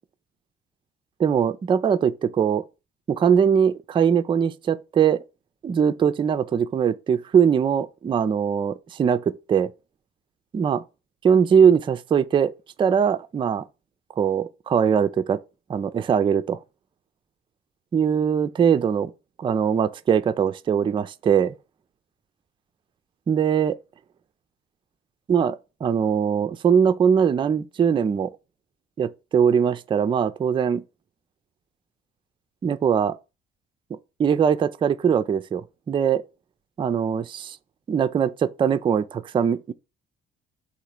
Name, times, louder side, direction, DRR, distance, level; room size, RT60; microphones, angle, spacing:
voice 1, 1.2-2.6 3.1-5.2 5.6-9.7 10.5-10.8 11.2-12.5 12.8-13.6 14.2-15.4 15.7-16.6 17.9-19.1 19.4-21.6 23.3-23.8 25.3-28.4 29.0-30.8 32.6-33.2 34.2-36.2 36.8-37.6 37.9-39.7, right 7 dB, 20° right, 0.3 m, -21 dB
3.8 x 2.9 x 4.3 m
figure-of-eight pair, 50°, 29 cm